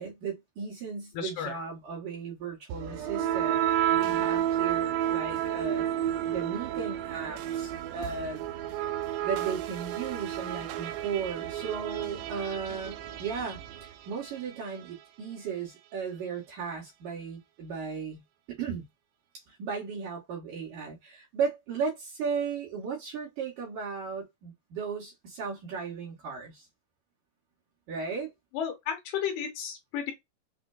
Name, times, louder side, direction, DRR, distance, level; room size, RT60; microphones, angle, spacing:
voice 1, 0.0-5.8 6.3-8.4 9.2-18.2 18.5-18.9 19.5-26.7 27.9-28.3, right 6 dB, 65° right, 2.3 m, -36 dB
voice 2, 1.1-1.6 28.5-30.1, left 8 dB, 80° left, 2.9 m, -33 dB
sound 1, 2.7-14.6, right 11 dB, 85° right, 2.6 m, -31 dB
6.2 x 2.2 x 2.2 m
omnidirectional pair, 4.7 m